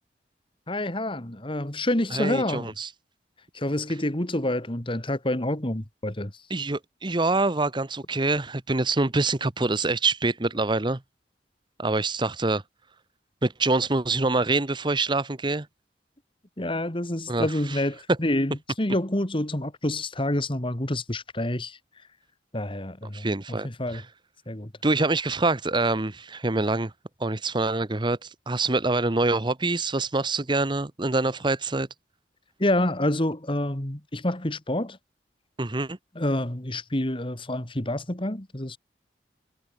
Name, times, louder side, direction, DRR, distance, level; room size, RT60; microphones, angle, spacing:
voice 1, 0.7-2.7 3.5-6.3 16.6-21.8 22.5-24.0 24.5-24.7 32.6-35.0 36.2-38.8, left 1 dB, 30° left, 2.3 m, -28 dB
voice 2, 2.1-2.9 6.5-11.0 11.8-12.6 13.4-15.7 17.3-17.8 23.1-24.0 24.8-26.9 27.2-31.9 35.6-36.0, right 3 dB, 25° right, 1.0 m, -25 dB
head